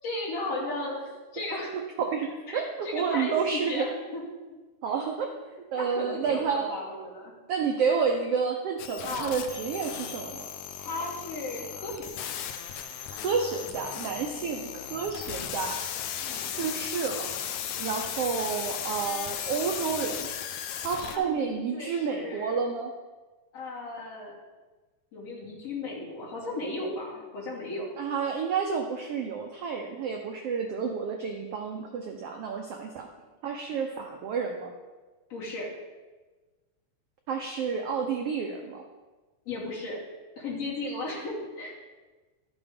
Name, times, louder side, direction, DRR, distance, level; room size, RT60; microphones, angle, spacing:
voice 1, 0.0-1.1 1.3-1.8 2.5-4.2 5.7-7.3 9.1-9.3 10.8-12.3 14.3-14.7 16.2-16.5 21.1-22.7 23.5-24.4 25.1-27.9 35.3-35.7 39.5-40.0 40.4-41.7, left 2 dB, 50° left, -6 dB, 3.7 m, -35 dB
voice 2, 2.5-3.9 4.8-5.3 5.7-6.7 7.5-10.5 13.2-15.8 16.3-17.5 17.8-20.3 20.8-22.9 28.0-33.1 33.4-34.7 37.3-38.8, right 6 dB, 85° right, 3 dB, 1.3 m, -30 dB
sound 1, 8.8-21.2, left 9 dB, 75° left, 1.9 m, -36 dB
12.5 x 7.4 x 5.2 m, 1.3 s
omnidirectional pair, 3.8 m